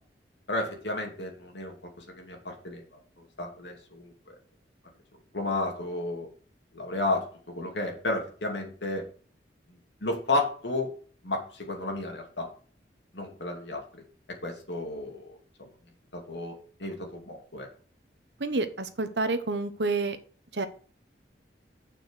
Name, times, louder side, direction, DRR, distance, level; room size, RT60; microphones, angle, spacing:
voice 1, 0.5-1.7 2.2-2.8 3.4-4.4 5.3-6.3 6.7-9.0 10.0-10.9 11.2-12.5 13.1-13.8 14.4-15.2 16.1-17.7, left 2 dB, 75° left, 1 dB, 2.6 m, -32 dB
voice 2, 18.4-20.2 20.5-20.7, right 3 dB, 70° right, 9 dB, 1.1 m, -28 dB
7.0 x 6.0 x 6.4 m, 0.43 s
head